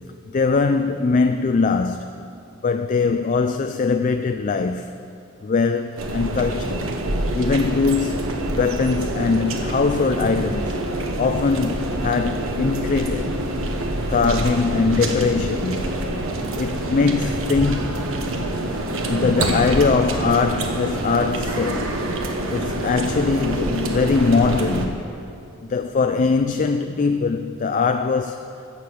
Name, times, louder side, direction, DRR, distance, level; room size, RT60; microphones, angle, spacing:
voice 1, 0.3-2.1 2.6-4.9 5.4-6.8 7.3-10.8 11.2-13.5 14.1-15.9 16.6-18.0 19.0-21.9 22.5-25.0 25.6-28.6, left 4 dB, 35° left, 0.3 m, -21 dB
sound 1, 6.0-24.9, right 1 dB, 65° right, 1.2 m, -26 dB
15.0 x 6.7 x 7.0 m
head